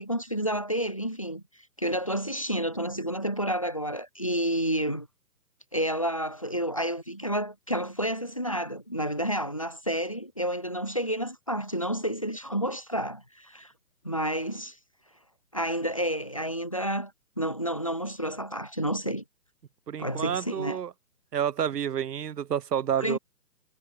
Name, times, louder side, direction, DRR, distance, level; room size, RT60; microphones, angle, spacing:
voice 1, 0.0-1.4 1.8-5.1 5.7-13.7 14.0-14.8 15.5-17.1 17.4-19.2 20.0-20.8 23.0-23.2, equal, 20° left, 0.5 m, -30 dB
voice 2, 19.9-20.9 21.3-23.2, right 9 dB, 70° right, 0.9 m, -29 dB
hypercardioid pair, 150°, 50 cm